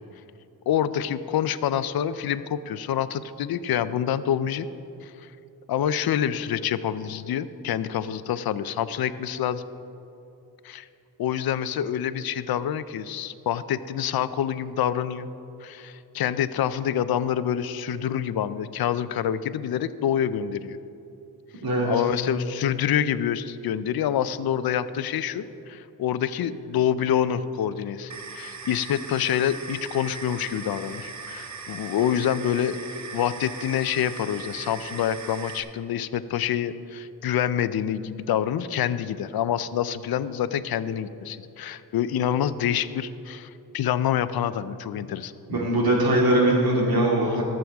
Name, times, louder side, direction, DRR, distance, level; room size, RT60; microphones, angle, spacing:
voice 1, 0.7-4.7 5.0-5.1 5.7-9.6 10.6-10.9 11.2-15.3 15.6-20.8 21.8-32.8 33.1-45.3 47.3-47.4, left 9 dB, 70° left, 14 dB, 0.5 m, -27 dB
sound 1, 28.1-35.6, right 5 dB, 45° right, 0.8 m, -39 dB
voice 2, 45.5-47.4, right 1 dB, 70° right, -2 dB, 2.4 m, -21 dB
20.0 x 7.7 x 3.5 m, 2.9 s
wide cardioid pair, 175°, 38 cm